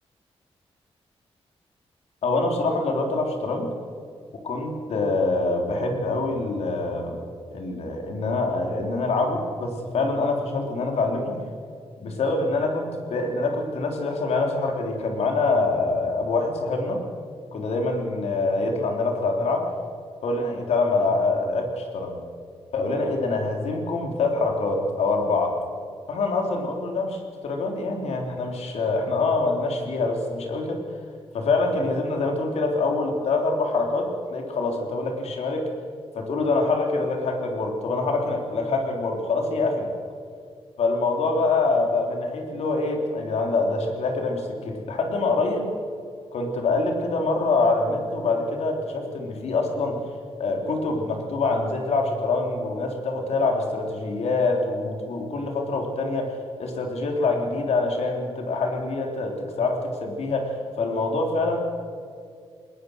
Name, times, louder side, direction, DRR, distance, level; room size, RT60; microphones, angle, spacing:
voice 1, 2.2-3.7 4.4-7.2 7.5-11.4 12.0-17.0 17.5-19.7 20.2-22.2 22.7-25.6 26.1-30.8 31.3-35.7 36.1-39.9 40.8-45.7 46.3-50.0 50.4-56.3 56.6-61.6, left 3 dB, 90° left, 2 dB, 3.6 m, -25 dB
20.5 x 20.5 x 6.6 m, 2.3 s
wide cardioid pair, 160°, 11 cm